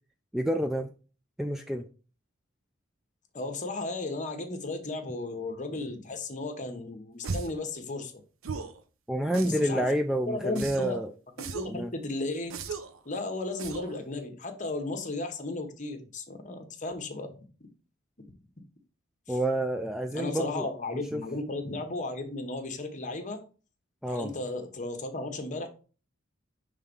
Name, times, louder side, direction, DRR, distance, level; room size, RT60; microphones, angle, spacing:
voice 1, 0.3-0.9 1.4-1.8 9.1-11.1 11.7-11.9 19.3-21.2 24.0-24.3, right 1 dB, ahead, 0.3 m, -29 dB
voice 2, 3.3-8.1 9.4-9.9 10.3-11.0 11.4-12.5 13.0-17.4 19.3-19.4 20.1-23.4 24.1-25.7, left 2 dB, 40° left, 1.1 m, -35 dB
sound 1, 7.2-7.6 8.4-8.8 9.3-9.8 10.6-11.0 11.4-11.8 12.5-13.0 13.6-14.0, right 4 dB, 80° right, 0.6 m, -37 dB
5.6 x 3.4 x 5.3 m
head